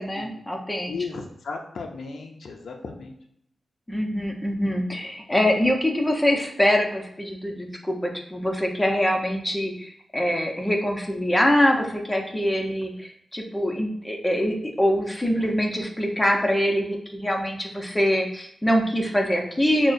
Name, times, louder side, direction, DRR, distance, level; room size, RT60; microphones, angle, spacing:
voice 1, 0.0-0.9 3.9-19.9, equal, 15° left, 1 dB, 0.9 m, -24 dB
voice 2, 0.8-3.1, left 4 dB, 80° left, 2 dB, 0.5 m, -35 dB
5.9 x 2.2 x 2.6 m, 0.74 s
cardioid pair, 55°, 0 cm